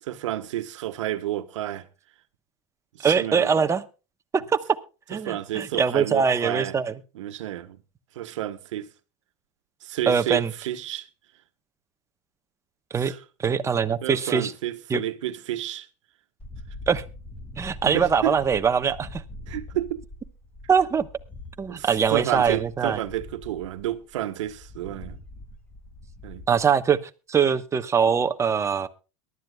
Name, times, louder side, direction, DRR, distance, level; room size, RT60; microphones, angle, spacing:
voice 1, 0.0-1.9 2.9-3.5 5.2-6.7 7.1-7.8 8.1-8.9 9.8-11.1 13.0-13.2 14.0-15.9 17.8-18.4 19.5-20.0 21.7-25.2 26.2-26.4, right 13 dB, 85° right, 1.3 m, -30 dB
voice 2, 3.0-3.8 4.5-4.6 5.1-6.9 10.1-10.5 12.9-13.1 13.4-14.5 14.9-15.0 16.9-17.0 17.6-19.2 20.7-21.1 21.6-23.0 26.5-27.0 27.3-28.9, right 6 dB, 20° right, 1.0 m, -22 dB
sound 1, 16.4-26.6, left 2 dB, 10° left, 1.8 m, -43 dB
22.5 x 12.5 x 2.3 m
supercardioid pair, 120°, 16 cm